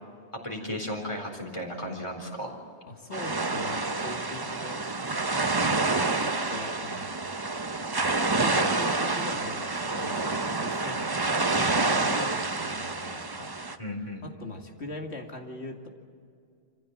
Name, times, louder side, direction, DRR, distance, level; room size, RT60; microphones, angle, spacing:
voice 1, 0.4-2.5 13.8-14.2, left 1 dB, 25° left, 1 dB, 4.1 m, -34 dB
voice 2, 2.9-7.3 8.2-11.0 11.5-13.6 14.2-15.9, left 2 dB, 75° left, 2 dB, 2.6 m, -41 dB
sound 1, 3.1-13.8, right 3 dB, 25° right, 0.8 m, -28 dB
26.5 x 15.5 x 7.5 m, 2.3 s
omnidirectional pair, 1.1 m